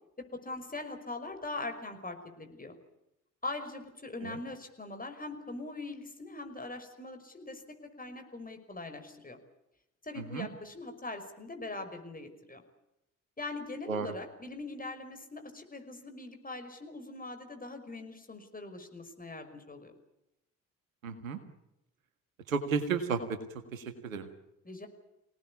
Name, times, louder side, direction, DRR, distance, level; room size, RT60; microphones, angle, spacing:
voice 1, 0.3-2.8 3.4-9.4 10.0-12.6 13.4-19.9 24.7-24.9, left 2 dB, 20° left, 6 dB, 5.6 m, -42 dB
voice 2, 10.2-10.5 13.9-14.1 21.0-21.4 22.5-23.4 23.7-24.3, right 5 dB, 85° right, 9 dB, 1.9 m, -33 dB
26.0 x 18.5 x 8.5 m, 0.87 s
figure-of-eight pair, 45°, 40 cm